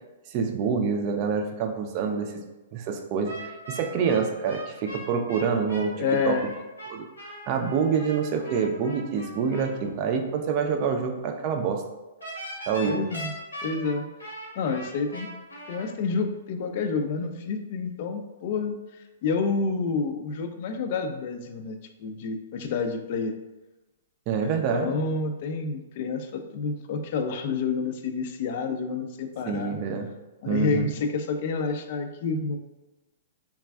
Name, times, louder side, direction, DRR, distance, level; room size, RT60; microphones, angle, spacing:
voice 1, 0.3-2.4 2.7-5.9 6.3-6.4 6.9-7.1 7.5-11.8 12.7-13.0 24.3-24.9 29.5-30.1 30.5-30.9, right 6 dB, 40° right, 4 dB, 0.4 m, -26 dB
sound 1, 3.2-9.7 12.2-15.9, equal, 90° left, 0.9 m, -40 dB
voice 2, 5.9-6.4 12.9-13.3 13.6-14.0 14.6-15.3 15.7-23.4 24.3-29.8 30.4-32.6, left 4 dB, 50° left, 6 dB, 0.3 m, -29 dB
3.2 x 2.3 x 2.2 m, 1.1 s
hypercardioid pair, 115°, 0 cm